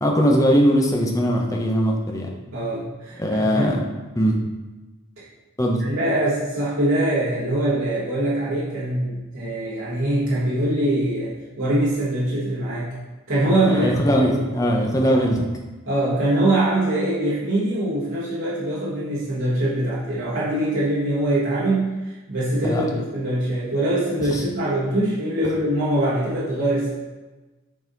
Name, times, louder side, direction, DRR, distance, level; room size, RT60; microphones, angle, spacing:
voice 1, 0.0-2.3 3.2-3.8 4.2-4.4 5.6-5.8 13.6-15.4 22.6-22.8 24.3-24.4, equal, 15° left, 0 dB, 0.8 m, -20 dB
voice 2, 2.5-3.7 4.2-4.3 5.2-5.3 5.8-12.9 13.3-13.9 14.3-14.4 15.1-15.3 15.8-26.9, right 1 dB, 70° right, -9 dB, 1.4 m, -23 dB
7.1 x 4.1 x 4.0 m, 1.2 s
head